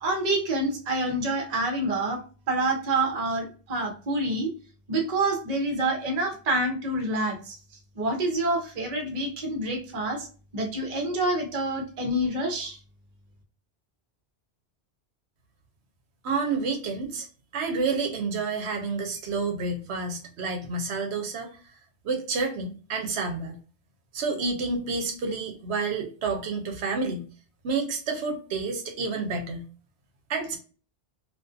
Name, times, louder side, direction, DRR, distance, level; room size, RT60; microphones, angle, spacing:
voice 1, 0.0-2.2 2.5-4.5 4.9-7.6 8.0-10.3 10.5-12.8, right 2 dB, 45° right, 3 dB, 0.6 m, -27 dB
voice 2, 16.2-17.3 17.5-21.5 22.0-23.6 24.1-27.3 27.6-29.7 30.3-30.6, right 4 dB, 75° right, 4 dB, 0.9 m, -29 dB
2.5 x 2.4 x 2.3 m, 0.37 s
omnidirectional pair, 1.1 m